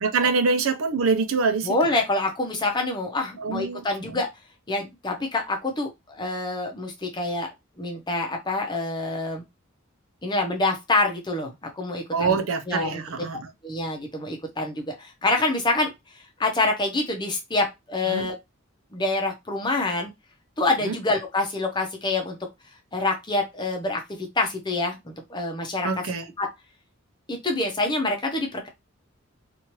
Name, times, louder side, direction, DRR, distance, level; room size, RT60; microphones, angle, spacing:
voice 1, 0.0-1.8 3.4-4.2 12.1-13.4 18.1-18.3 20.8-21.0 25.8-26.3, right 4 dB, 85° right, 0.5 m, -25 dB
voice 2, 1.6-4.3 4.7-9.4 10.2-12.4 12.7-13.0 13.6-15.9 16.4-18.3 18.9-20.1 20.6-22.4 22.9-25.9 26.4-26.5 27.3-28.7, left 2 dB, 20° left, 0.7 m, -26 dB
3.0 x 2.4 x 2.9 m
head